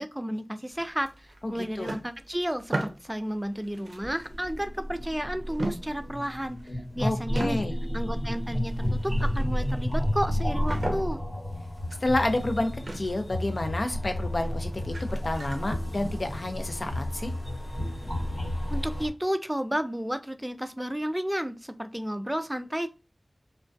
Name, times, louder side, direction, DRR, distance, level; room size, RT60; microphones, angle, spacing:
voice 1, 0.0-6.6 6.9-7.6 7.9-11.2 18.7-22.9, equal, 10° right, 10 dB, 0.3 m, -32 dB
sound 1, 0.7-5.2 5.5-7.0 7.3-16.4, right 2 dB, 85° right, 0.4 m, -40 dB
voice 2, 1.4-1.9 7.0-7.7 12.0-17.3, left 2 dB, 70° left, 6 dB, 0.4 m, -30 dB
sound 2, 3.7-19.1, equal, 90° left, 1.1 m, -31 dB
2.3 x 2.2 x 2.5 m, 0.31 s
wide cardioid pair, 40°, 0 cm